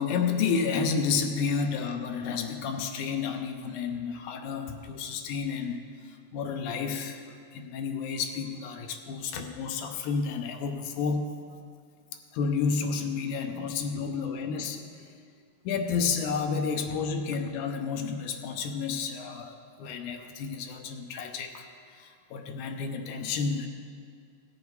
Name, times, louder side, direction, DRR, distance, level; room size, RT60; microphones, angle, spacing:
voice 1, 0.0-7.2 7.5-11.3 12.3-14.8 15.6-21.7 21.9-23.7, left 5 dB, 80° left, 5 dB, 2.2 m, -31 dB
17.0 x 7.1 x 4.7 m, 2.2 s
omnidirectional pair, 3.6 m